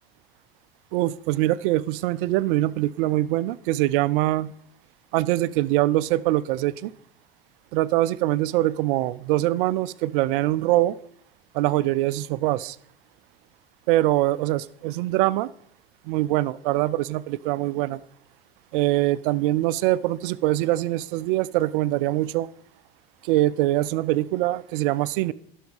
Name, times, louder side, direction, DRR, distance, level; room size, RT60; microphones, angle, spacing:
voice 1, 0.9-4.5 5.1-6.9 7.7-10.9 11.5-12.8 13.9-15.5 16.1-18.0 18.7-22.5 23.2-25.3, right 16 dB, 60° right, 17 dB, 0.5 m, -23 dB
10.5 x 6.4 x 5.3 m, 0.68 s
hypercardioid pair, 80°, 29 cm